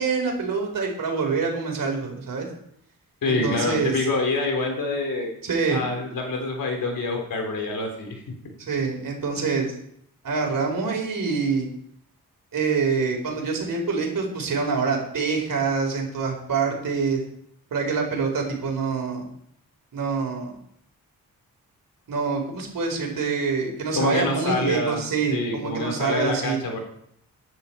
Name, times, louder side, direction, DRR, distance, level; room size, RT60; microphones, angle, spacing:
voice 1, 0.0-2.5 3.3-3.9 5.4-5.8 8.6-9.7 10.2-11.7 12.5-17.2 17.7-19.3 19.9-20.6 22.1-26.6, right 5 dB, 70° right, 2 dB, 4.3 m, -25 dB
voice 2, 3.2-5.3 5.7-8.2 24.0-25.0 25.3-26.8, left 3 dB, 75° left, 2 dB, 3.9 m, -26 dB
13.5 x 11.0 x 4.5 m, 0.71 s
cardioid pair, 75°, 35 cm